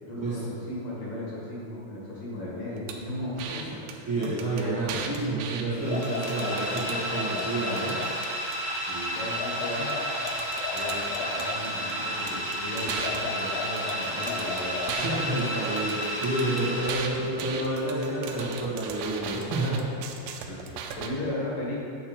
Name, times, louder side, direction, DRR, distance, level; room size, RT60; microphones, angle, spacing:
voice 1, 0.0-4.3 4.9-5.0 8.9-9.9 10.7-14.9 20.4-21.8, left 1 dB, 55° left, -6 dB, 2.9 m, -36 dB
sound 1, 2.9-3.0 3.4-3.6 3.9-4.0 4.2-5.6 6.0-7.0 7.4-8.6 9.9-10.0 10.3-11.9 12.3-15.1 15.4-21.1, right 6 dB, 85° right, 2.8 m, -38 dB
voice 2, 3.4-3.8 4.1-8.0 14.9-19.9 20.5-20.6, right 2 dB, 60° right, -9 dB, 1.3 m, -29 dB
sound 2, 5.7-8.2 9.2-11.7 12.8-15.4, left 4 dB, 80° left, 2.9 m, -36 dB
sound 3, 5.7-17.5, equal, 25° left, 1.3 m, -32 dB
9.1 x 7.8 x 4.4 m, 2.6 s
omnidirectional pair, 5.0 m